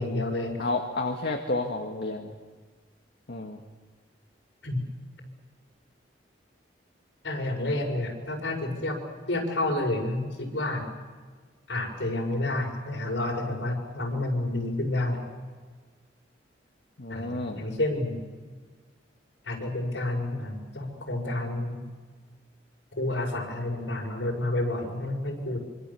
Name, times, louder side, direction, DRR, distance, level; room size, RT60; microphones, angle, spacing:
voice 1, 0.0-0.5 4.6-4.8 7.2-9.0 9.3-10.9 11.7-15.3 17.1-18.2 19.4-21.8 23.0-25.6, left 1 dB, 80° left, 2 dB, 5.6 m, -29 dB
voice 2, 0.6-2.3 3.3-3.6 17.0-17.7, left 2 dB, 60° left, 2 dB, 1.7 m, -31 dB
25.5 x 25.5 x 7.0 m, 1.5 s
head